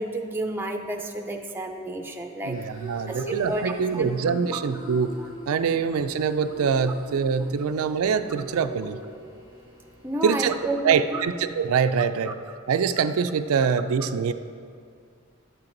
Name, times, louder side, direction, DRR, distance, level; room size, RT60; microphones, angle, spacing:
voice 1, 0.0-2.6 3.1-4.2 4.5-4.6 5.2-5.3 10.0-11.2 12.3-12.4, right 1 dB, 10° right, 3 dB, 0.5 m, -31 dB
voice 2, 2.4-5.1 5.5-9.0 10.2-10.5 10.8-12.4 12.7-14.3, right 6 dB, 80° right, 10 dB, 0.4 m, -24 dB
sound 1, 2.5-10.7, equal, 75° left, 2.1 m, -40 dB
11.0 x 7.4 x 3.9 m, 2.3 s
head